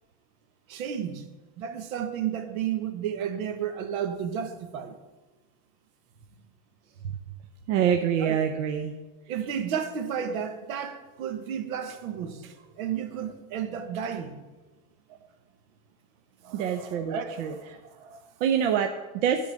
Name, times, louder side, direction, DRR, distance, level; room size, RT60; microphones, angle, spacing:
voice 1, 0.7-1.2 1.6-5.0 8.2-8.4 9.3-14.4 16.4-18.3, right 8 dB, 75° right, 1.3 m, -33 dB
voice 2, 7.7-8.9 16.5-17.5 18.4-19.4, right 8 dB, 60° right, 0.7 m, -26 dB
11.0 x 3.9 x 7.5 m
supercardioid pair, 170°, 41 cm